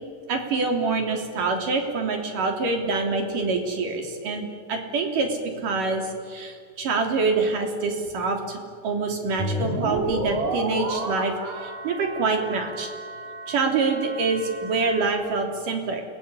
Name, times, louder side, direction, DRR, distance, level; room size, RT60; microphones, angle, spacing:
voice 1, 0.3-12.9 13.5-16.0, right 4 dB, 70° right, 3 dB, 4.8 m, -26 dB
sound 1, 9.4-15.1, right 1 dB, 55° right, 5.0 m, -31 dB
28.0 x 20.0 x 10.0 m, 2.2 s
omnidirectional pair, 3.9 m